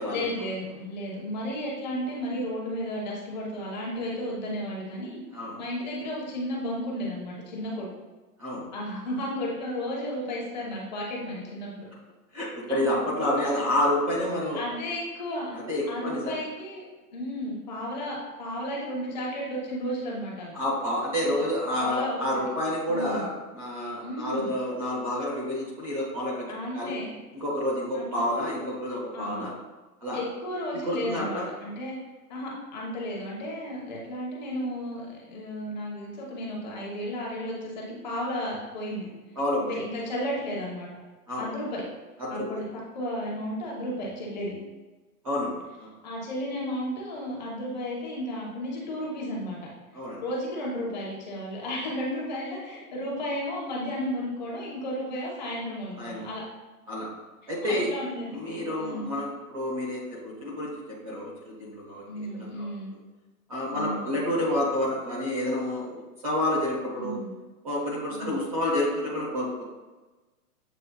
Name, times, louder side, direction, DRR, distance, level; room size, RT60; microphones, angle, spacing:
voice 1, 0.1-5.2 5.6-7.9 8.7-11.9 12.7-12.8 14.5-15.5 15.9-16.9 17.1-20.5 21.2-21.3 21.7-22.1 22.9-23.3 24.0-24.5 26.5-27.1 27.9-28.2 29.1-29.5 30.1-31.9 32.3-39.1 39.6-40.9 41.4-41.8 42.3-42.7 42.9-44.6 46.0-49.6 50.2-56.4 57.6-58.4 58.8-59.1 62.1-62.9 63.7-64.1 67.0-67.3 68.1-68.3, equal, 30° left, -3 dB, 0.9 m, -33 dB
voice 2, 12.3-14.6 15.5-16.4 20.5-26.5 26.7-26.9 27.3-29.5 30.0-30.2 30.8-31.5 39.4-39.8 41.3-41.4 42.2-42.5 45.2-45.9 49.9-50.2 56.0-56.2 56.9-57.1 57.5-57.9 58.3-61.3 61.6-62.7 63.5-67.2 67.6-69.5, left 1 dB, 25° right, -5 dB, 0.6 m, -29 dB
7.7 x 3.0 x 2.2 m, 1.2 s
hypercardioid pair, 175°, 47 cm